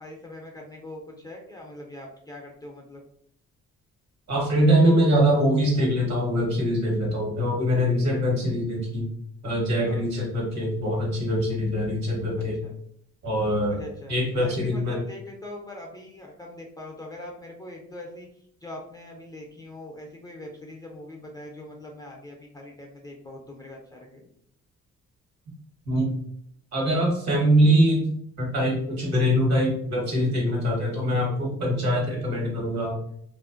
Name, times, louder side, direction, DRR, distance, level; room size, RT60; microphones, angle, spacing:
voice 1, 0.0-3.0 9.8-10.0 12.6-12.8 13.7-18.3 18.6-24.2, left 1 dB, 15° left, -1 dB, 0.4 m, -42 dB
voice 2, 4.3-9.1 9.4-12.6 13.2-13.8 14.1-15.0 25.9-26.1 26.7-33.0, equal, 60° right, -2 dB, 1.2 m, -23 dB
2.5 x 2.0 x 2.4 m, 0.69 s
cardioid pair, 90°, 30 cm